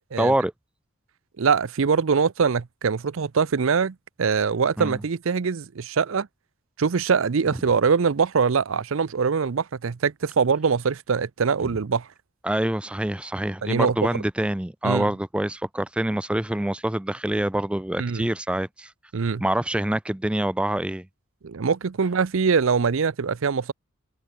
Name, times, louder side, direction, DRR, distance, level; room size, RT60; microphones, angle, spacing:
voice 1, 0.2-0.5 4.8-5.0 12.4-18.9 19.4-21.1, right 1 dB, 5° right, 0.3 m, -25 dB
voice 2, 1.4-6.3 6.8-12.1 13.6-14.2 14.8-15.1 18.0-18.3 19.1-19.4 21.4-23.7, right 5 dB, 65° right, 0.5 m, -23 dB
head